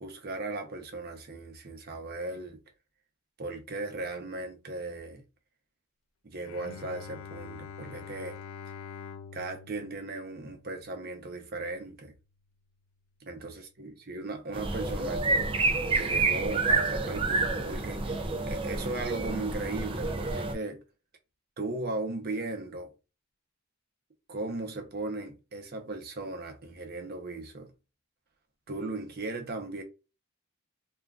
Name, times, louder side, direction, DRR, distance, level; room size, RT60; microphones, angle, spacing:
voice 1, 0.0-2.6 3.4-5.2 6.2-8.4 9.3-12.1 13.2-15.5 15.9-20.8 21.6-22.9 24.3-27.7 28.7-29.8, right 2 dB, 50° right, 0.7 m, -37 dB
Bowed string instrument, 6.4-11.7, left 6 dB, 75° left, 0.4 m, -46 dB
sound 1, 14.5-20.5, right 3 dB, 25° right, 0.4 m, -29 dB
3.5 x 2.4 x 2.3 m
head